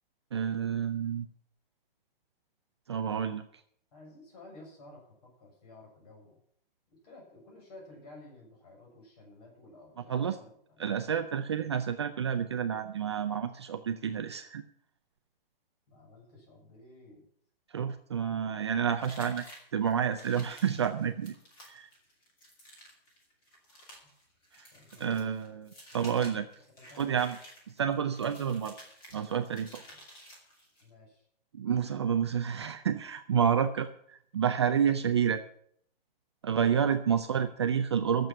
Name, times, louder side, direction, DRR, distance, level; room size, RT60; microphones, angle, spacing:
voice 1, 0.3-1.3 2.9-3.5 10.1-10.3 10.8-14.6 17.7-19.4 19.7-21.3 21.7-21.9 24.6-24.7 25.0-26.5 27.0-27.4 27.8-28.8 29.1-29.8 31.5-35.4 36.4-38.3, right 8 dB, 30° right, 7 dB, 0.5 m, -29 dB
voice 2, 3.9-6.4 6.9-11.0 15.9-17.2 18.1-18.7 24.7-25.4 26.8-27.2 29.9-30.0 30.8-31.2, left 2 dB, 40° left, 0 dB, 7.2 m, -53 dB
sound 1, 19.0-30.9, equal, 15° left, 2.5 m, -53 dB
12.5 x 7.8 x 8.9 m, 0.65 s
hypercardioid pair, 175°, 29 cm